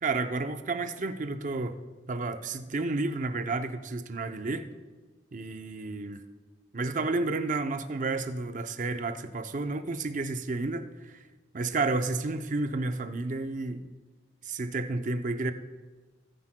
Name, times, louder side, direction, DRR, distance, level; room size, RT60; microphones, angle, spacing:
voice 1, 0.0-1.8 2.1-4.7 5.3-6.2 6.7-11.2 11.5-13.9 14.4-15.5, right 3 dB, 45° right, 0.6 m, -31 dB
18.0 x 9.7 x 2.2 m
head